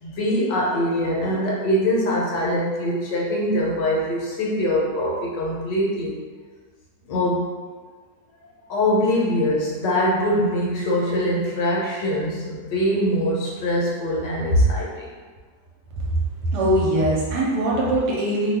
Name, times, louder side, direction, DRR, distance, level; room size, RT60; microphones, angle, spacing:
voice 1, 0.0-6.1 7.1-7.5 8.7-15.1, equal, 75° left, -4 dB, 1.4 m, -23 dB
voice 2, 16.5-18.6, right 1 dB, 70° right, -5 dB, 1.2 m, -21 dB
3.1 x 2.3 x 3.3 m, 1.5 s
omnidirectional pair, 2.0 m